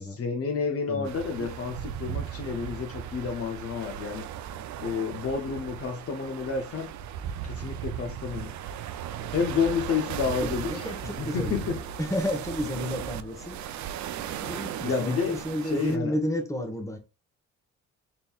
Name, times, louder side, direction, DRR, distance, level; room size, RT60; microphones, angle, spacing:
voice 1, 0.1-4.3 4.8-6.9 7.4-8.5 9.3-10.9 11.2-11.8 14.8-15.4 15.6-16.1, left 5 dB, 50° left, 0.8 m, -30 dB
sound 1, 1.0-16.0, right 10 dB, 70° right, 0.5 m, -37 dB
sound 2, 9.1-14.4, right 3 dB, 50° right, 1.1 m, -51 dB
voice 2, 10.2-11.7 12.0-13.6 14.2-17.0, left 1 dB, 10° left, 1.1 m, -31 dB
4.1 x 3.6 x 2.3 m
cardioid pair, 90°, 30 cm